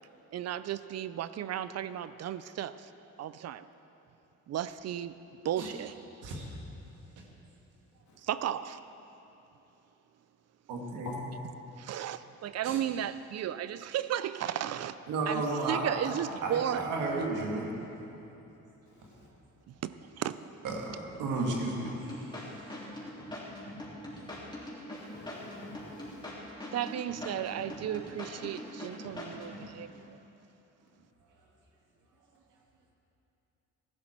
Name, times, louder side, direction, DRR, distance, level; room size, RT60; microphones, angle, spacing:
voice 1, 0.3-2.9 3.2-3.6 4.5-5.2 5.4-5.9 8.2-8.8 11.8-15.0 15.3-16.8 19.7-19.9 20.2-20.4 26.7-30.2, right 10 dB, 60° right, 13 dB, 0.5 m, -34 dB
voice 2, 10.7-11.1 12.6-12.8 15.1-16.1 16.4-17.7 20.6-22.7, right 3 dB, 85° right, 0 dB, 2.1 m, -33 dB
sound 1, 21.8-29.7, left 1 dB, 15° left, 3.4 m, -42 dB
voice 3, 25.0-26.3, left 4 dB, 70° left, -2 dB, 2.5 m, -47 dB
15.0 x 11.5 x 4.5 m, 3.0 s
cardioid pair, 90°, 30 cm